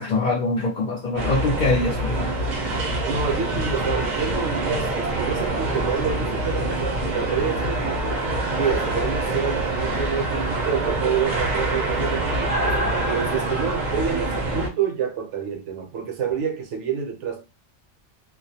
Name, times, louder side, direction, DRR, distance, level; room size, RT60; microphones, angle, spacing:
voice 1, 0.0-2.3, left 2 dB, 60° left, 0.5 m, -23 dB
sound 1, 1.2-14.7, right 2 dB, 50° right, 0.6 m, -25 dB
voice 2, 3.0-8.2 8.5-12.6 13.0-17.4, right 7 dB, 70° right, 0.9 m, -28 dB
2.3 x 2.0 x 2.7 m
omnidirectional pair, 1.3 m